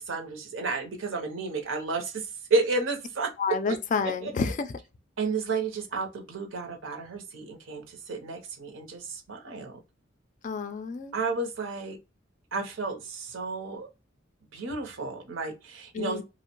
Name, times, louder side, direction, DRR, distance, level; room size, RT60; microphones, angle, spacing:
voice 1, 0.0-3.3 3.7-3.8 4.2-4.5 5.2-9.8 11.1-12.0 12.5-13.9 14.5-16.2, right 3 dB, 75° right, 0.6 m, -32 dB
voice 2, 3.4-4.7 10.4-11.1 15.9-16.2, left 5 dB, 40° left, 0.3 m, -29 dB
2.5 x 2.0 x 2.8 m
head